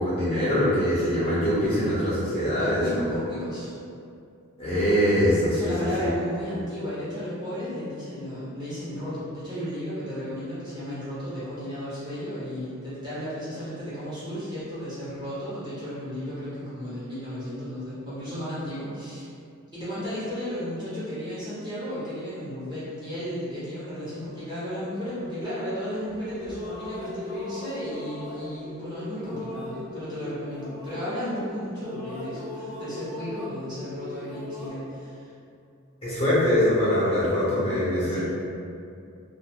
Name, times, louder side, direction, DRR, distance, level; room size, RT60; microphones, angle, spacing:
voice 1, 0.0-3.2 4.6-5.7 6.0-6.1 36.0-38.2, equal, 25° left, -10 dB, 0.6 m, -23 dB
voice 2, 2.5-3.7 5.5-19.2 19.7-35.3 38.0-38.2, equal, 20° right, -12 dB, 0.8 m, -34 dB
sound 1, 26.1-31.4 31.7-34.7, left 2 dB, 35° right, 1.1 m, -38 dB
2.3 x 2.3 x 2.8 m, 2.4 s
head